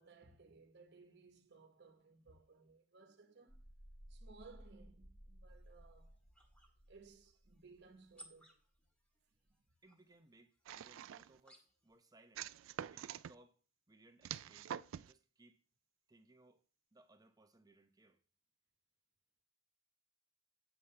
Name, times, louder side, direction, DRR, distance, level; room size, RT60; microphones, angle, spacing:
voice 1, 0.0-3.6 4.1-6.2 6.9-8.5, right 4 dB, 60° right, 1.2 m, -61 dB
sound 1, 3.5-8.1, equal, 35° left, 1.7 m, -59 dB
sound 2, 5.5-12.0, equal, 5° left, 1.7 m, -66 dB
voice 2, 9.8-12.5 12.9-13.6 13.9-15.6 16.1-16.6 16.9-18.2, right 2 dB, 20° right, 0.8 m, -66 dB
sound 3, 10.7-11.4 12.4-13.3 14.2-15.1, right 10 dB, 80° right, 0.3 m, -46 dB
8.1 x 7.4 x 3.3 m
head